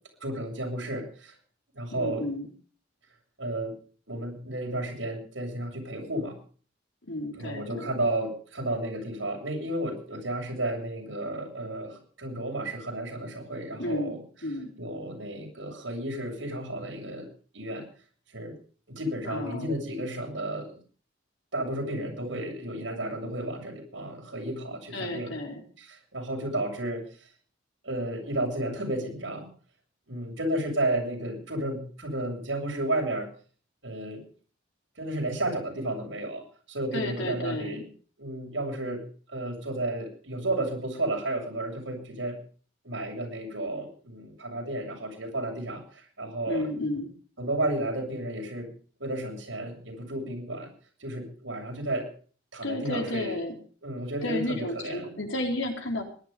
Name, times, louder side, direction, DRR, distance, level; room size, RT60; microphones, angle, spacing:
voice 1, 0.2-1.3 1.7-2.2 3.4-3.7 4.1-6.4 7.3-14.2 14.8-17.3 17.5-17.8 18.3-18.5 18.9-20.7 21.5-25.3 25.8-27.0 27.8-29.5 30.1-33.3 33.8-34.2 35.0-37.8 38.2-42.4 42.8-46.7 47.4-48.7 49.0-50.7 51.0-52.1 52.5-53.4 53.8-55.1, right 1 dB, 90° right, 1 dB, 7.7 m, -32 dB
voice 2, 1.9-2.5 7.1-7.9 13.8-14.1 14.4-14.7 19.3-19.7 24.9-25.6 36.9-37.9 46.5-47.1 52.6-53.6 54.2-56.0, left 1 dB, 80° left, 2 dB, 4.5 m, -32 dB
20.0 x 11.5 x 5.4 m, 0.42 s
head